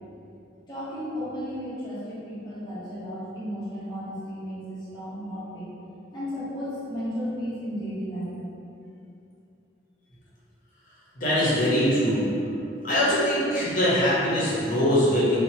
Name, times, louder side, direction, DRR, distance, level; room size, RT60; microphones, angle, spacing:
voice 1, 0.7-5.7 6.1-8.3, equal, 25° left, -11 dB, 0.8 m, -34 dB
voice 2, 11.1-12.3 12.8-15.4, equal, 45° left, -8 dB, 0.8 m, -22 dB
2.7 x 2.1 x 2.7 m, 2.6 s
head